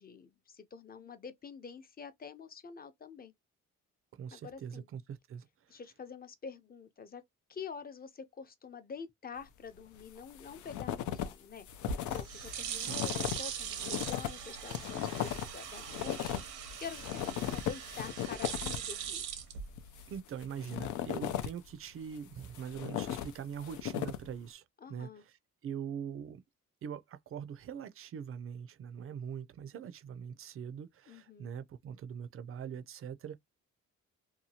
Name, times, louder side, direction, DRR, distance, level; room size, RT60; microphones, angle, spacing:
voice 1, 0.0-3.3 4.3-4.9 5.7-7.2 7.5-16.3 16.8-19.3 24.8-25.2 31.1-31.5, left 6 dB, 30° left, 0.6 m, -47 dB
voice 2, 4.1-5.8 12.8-13.0 20.1-25.4 25.6-26.4 26.8-33.4, right 8 dB, 45° right, 0.5 m, -43 dB
sound 1, 10.0-11.3 11.6-19.0 19.7-21.7 22.2-24.4, left 11 dB, 75° left, 0.5 m, -37 dB
sound 2, 11.7-20.2, right 7 dB, 85° right, 0.8 m, -41 dB
2.8 x 2.3 x 2.8 m
cardioid pair, 90°, 30 cm